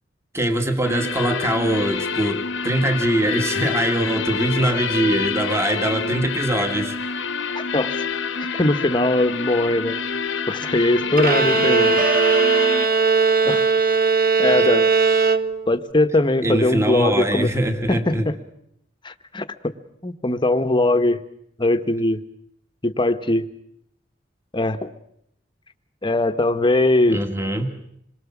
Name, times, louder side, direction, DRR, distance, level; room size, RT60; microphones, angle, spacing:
voice 1, 0.3-7.0 14.6-14.7 16.4-18.3 27.1-27.7, right 1 dB, 15° right, 6 dB, 1.7 m, -22 dB
sound 1, 0.8-12.8, left 5 dB, 75° left, 1.1 m, -27 dB
voice 2, 7.5-7.9 8.4-10.0 10.5-12.1 13.4-13.7 14.4-14.9 15.7-17.5 17.9-18.3 19.0-19.7 20.0-21.2 21.6-22.2 22.8-23.5 24.5-24.9 26.0-27.2, left 2 dB, 25° left, 9 dB, 1.1 m, -21 dB
Bowed string instrument, 11.2-15.9, right 5 dB, 50° right, 1.1 m, -18 dB
Piano, 12.0-13.9, right 3 dB, 70° right, 2.4 m, -31 dB
26.5 x 22.0 x 7.3 m, 0.73 s
head